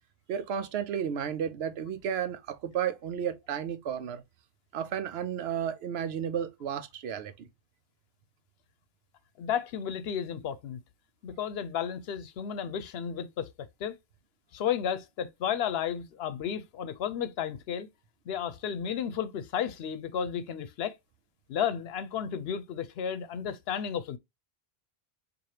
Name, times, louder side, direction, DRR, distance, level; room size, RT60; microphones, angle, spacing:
voice 1, 0.3-4.2 4.7-7.5, right 8 dB, 80° right, 0.8 m, -33 dB
voice 2, 9.4-10.8 11.2-13.5 13.8-14.0 14.5-17.9 18.3-20.9 21.5-24.2, left 8 dB, 80° left, 0.8 m, -33 dB
4.8 x 2.6 x 2.7 m
omnidirectional pair, 1.0 m